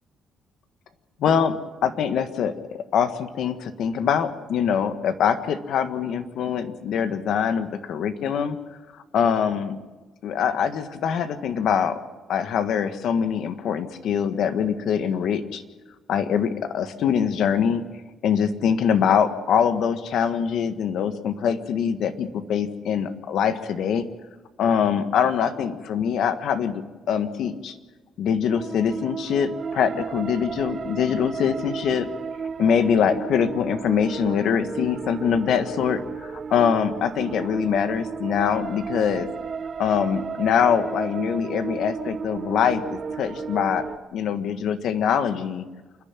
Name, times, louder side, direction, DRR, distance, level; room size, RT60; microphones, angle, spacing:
voice 1, 1.2-1.6 1.8-8.6 9.1-9.8 10.2-12.0 12.3-15.6 16.1-17.8 18.2-24.0 24.6-27.8 28.2-32.1 32.6-39.3 39.8-43.8 44.1-45.6, left 7 dB, 75° left, 9 dB, 1.6 m, -23 dB
sound 1, 28.4-44.0, right 6 dB, 50° right, 1.0 m, -33 dB
28.0 x 10.5 x 9.0 m, 1.3 s
cardioid pair, 90°, 0 cm